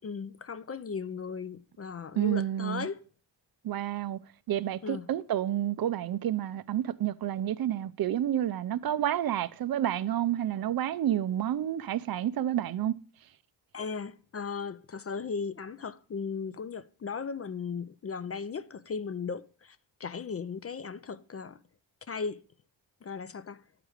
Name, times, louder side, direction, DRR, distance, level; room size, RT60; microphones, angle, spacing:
voice 1, 0.0-3.0 4.8-5.0 13.7-19.8 20.0-21.6 22.1-22.4 23.0-23.6, left 5 dB, 30° left, 0.4 m, -36 dB
voice 2, 2.2-2.9 3.6-4.2 4.5-13.0, right 11 dB, 50° right, 0.6 m, -29 dB
8.9 x 4.9 x 4.9 m
cardioid pair, 65°, 46 cm